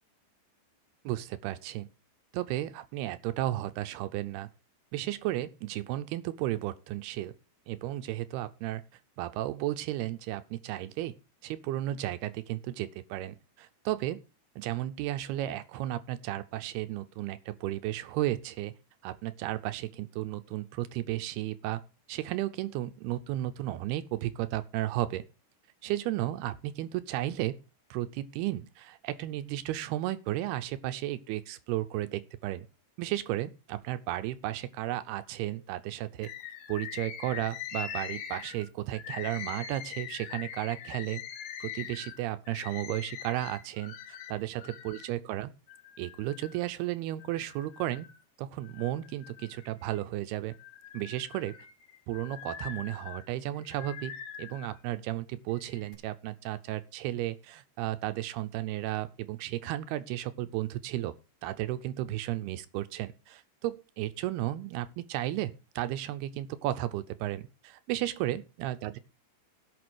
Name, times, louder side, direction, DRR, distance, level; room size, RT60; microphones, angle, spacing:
voice 1, 1.1-1.9 2.3-4.5 4.9-7.3 7.7-8.8 9.2-11.1 11.4-14.2 14.6-18.8 19.0-21.8 22.1-25.2 25.8-27.6 27.9-32.7 33.0-36.3 36.7-41.2 41.6-45.5 46.0-48.1 48.4-50.5 50.9-51.6 52.1-54.1 54.4-61.1 61.4-69.0, right 14 dB, 80° right, 2.4 m, -34 dB
Bird, 36.2-45.1 45.7-46.7 47.2-48.2 48.6-50.0 50.5-54.8 55.5-55.9, left 9 dB, 70° left, 2.0 m, -43 dB
17.0 x 6.1 x 4.7 m
omnidirectional pair, 5.1 m